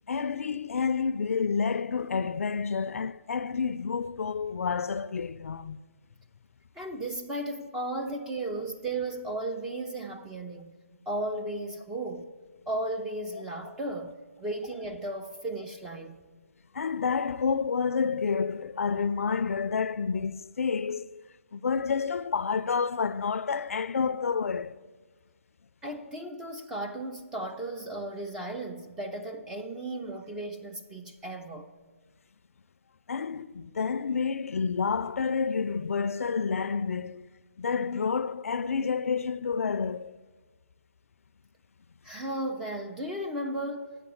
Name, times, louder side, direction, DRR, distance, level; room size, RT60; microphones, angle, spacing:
voice 1, 0.1-5.8 13.3-13.4 16.7-21.2 21.5-24.8 33.1-37.2 37.6-40.2, left 5 dB, 70° left, 0.4 m, -29 dB
voice 2, 6.8-10.7 11.1-12.3 12.7-16.2 25.8-31.7 42.0-43.9, right 1 dB, 5° right, 0.5 m, -35 dB
11.5 x 8.4 x 7.0 m
hypercardioid pair, 165°, 8 cm